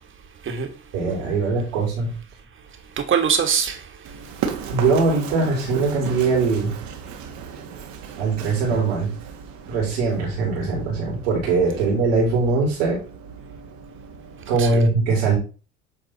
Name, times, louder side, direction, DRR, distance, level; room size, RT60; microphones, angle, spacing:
voice 1, 0.9-2.1 4.7-6.7 8.2-9.1 9.7-13.0 14.5-15.4, right 3 dB, 85° right, 2.9 m, -21 dB
voice 2, 2.9-4.5 11.7-11.8 14.6-14.8, right 7 dB, 40° right, 1.8 m, -24 dB
Run, 4.0-14.6, right 7 dB, 70° right, 1.6 m, -36 dB
8.5 x 3.5 x 4.1 m
supercardioid pair, 85°, 30 cm